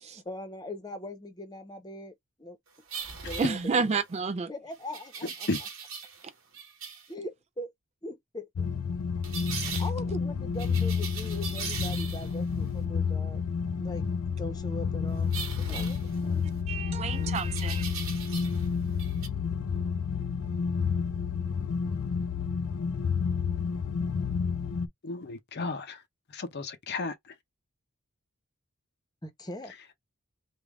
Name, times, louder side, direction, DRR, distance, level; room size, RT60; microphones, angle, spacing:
voice 1, 0.0-2.1 2.4-2.6 3.2-3.9 4.5-5.5 7.1-7.7 8.0-8.7 9.3-9.4 9.8-13.4 13.8-14.1 14.4-16.0 16.2-16.4 29.2-29.7, left 1 dB, 20° left, 0.9 m, -41 dB
sound 1, 2.9-4.1 4.9-6.3 6.5-7.1 9.2-9.9 10.6-12.4 15.3-16.6 17.3-18.7 18.9-19.3, right 6 dB, 65° right, 1.3 m, -39 dB
voice 2, 3.4-4.5 9.7-9.8 16.7-17.8, right 5 dB, 30° right, 0.3 m, -30 dB
sound 2, 8.6-24.9, left 6 dB, 85° left, 0.4 m, -30 dB
voice 3, 25.0-26.0 26.3-27.1, left 3 dB, 50° left, 0.7 m, -33 dB
3.4 x 2.4 x 3.5 m
head